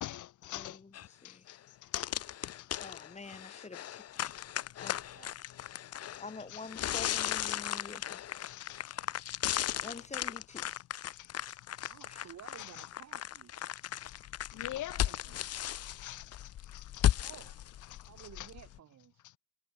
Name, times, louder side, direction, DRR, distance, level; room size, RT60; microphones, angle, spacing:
voice 1, 0.0-0.8 1.2-2.1 2.6-2.7 3.8-4.5 4.8-4.9 5.4-5.6 6.5-6.9 8.3-9.0 9.7-10.0 10.5-12.9 13.7-14.2 14.5-15.2 15.5-18.5, left 14 dB, 80° left, 2.2 m, -47 dB
voice 2, 0.5-1.5 2.8-4.0 4.8-5.0 6.2-8.2 9.8-10.7 12.1-12.4, left 3 dB, 20° left, 2.6 m, -47 dB
sound 1, 0.9-1.1 1.5-1.6 1.9-18.8, left 11 dB, 55° left, 0.7 m, -36 dB
voice 3, 11.9-13.7 14.5-15.4 17.2-17.6 18.1-19.2, right 10 dB, 60° right, 3.4 m, -54 dB
cardioid pair, 90°, 30 cm